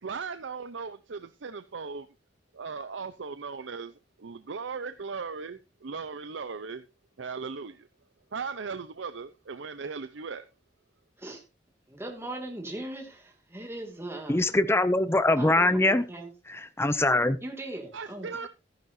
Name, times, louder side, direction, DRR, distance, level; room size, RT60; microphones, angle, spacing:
voice 1, 0.0-2.1 2.5-3.9 4.2-6.8 7.2-7.9 8.3-10.4 17.9-18.5, right 5 dB, 85° right, 0.6 m, -37 dB
voice 2, 11.9-14.4 15.4-16.3 17.4-18.3, right 1 dB, 15° right, 2.4 m, -39 dB
voice 3, 14.3-16.0 16.8-17.4, left 2 dB, 15° left, 0.7 m, -22 dB
14.0 x 10.5 x 2.7 m
head